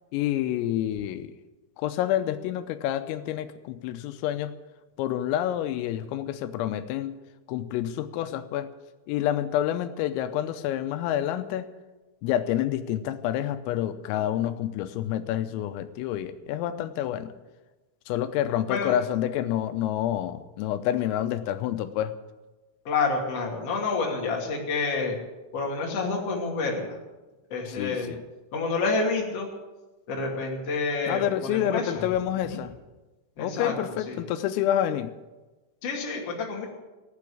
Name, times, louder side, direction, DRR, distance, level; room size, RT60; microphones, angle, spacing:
voice 1, 0.1-1.3 1.8-4.5 5.0-7.2 7.5-8.7 9.1-11.7 12.2-17.3 18.1-22.1 27.7-28.2 31.1-32.8 33.4-35.1, left 11 dB, 90° left, 10 dB, 3.4 m, -28 dB
voice 2, 22.8-25.2 25.5-27.0 27.5-28.1 28.5-29.5 30.1-32.0 32.5-32.6 33.4-33.7 34.1-34.2 35.8-36.7, left 4 dB, 35° left, -1 dB, 2.8 m, -28 dB
16.5 x 9.4 x 8.5 m, 1.1 s
omnidirectional pair, 5.9 m